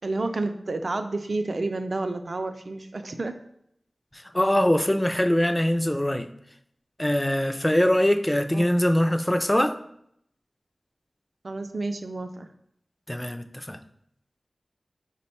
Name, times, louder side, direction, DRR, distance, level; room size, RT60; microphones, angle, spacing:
voice 1, 0.0-3.3 8.5-8.7 11.4-12.5, right 2 dB, 65° right, 0.4 m, -30 dB
voice 2, 4.1-6.3 7.0-9.8 13.1-13.8, left 1 dB, 15° left, 0.3 m, -23 dB
5.1 x 2.2 x 4.1 m
wide cardioid pair, 60°, 0 cm